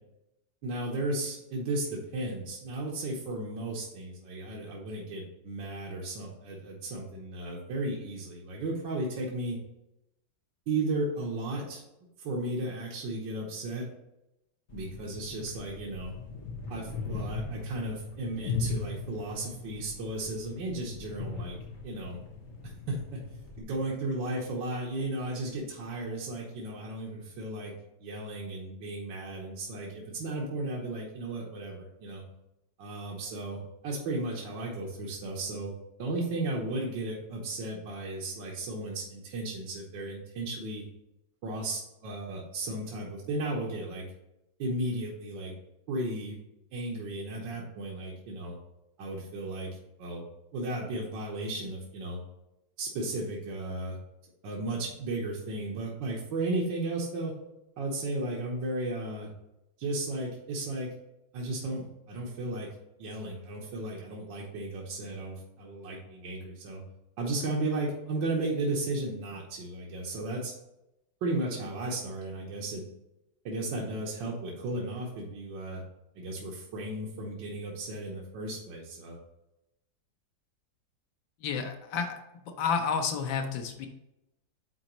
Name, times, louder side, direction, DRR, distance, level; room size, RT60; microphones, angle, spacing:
voice 1, 0.6-9.6 10.7-11.8 12.2-13.9 14.7-16.1 16.7-21.6 21.8-22.2 22.6-27.7 28.0-32.2 32.8-35.7 36.0-40.8 41.4-44.0 44.6-45.5 45.9-46.4 46.7-48.6 49.0-49.7 50.0-50.3 50.5-52.2 52.8-54.0 54.4-57.3 57.8-59.3 59.8-60.9 61.3-62.7 63.0-66.8 67.2-70.5 71.2-72.8 73.5-75.8 76.2-79.2, right 2 dB, 75° right, -3 dB, 1.8 m, -34 dB
sound 1, 14.7-23.6, left 4 dB, 50° left, 1.3 m, -39 dB
voice 2, 81.4-82.2 82.6-83.9, left 6 dB, 85° left, 4 dB, 1.5 m, -30 dB
9.4 x 3.9 x 3.1 m, 0.89 s
omnidirectional pair, 2.0 m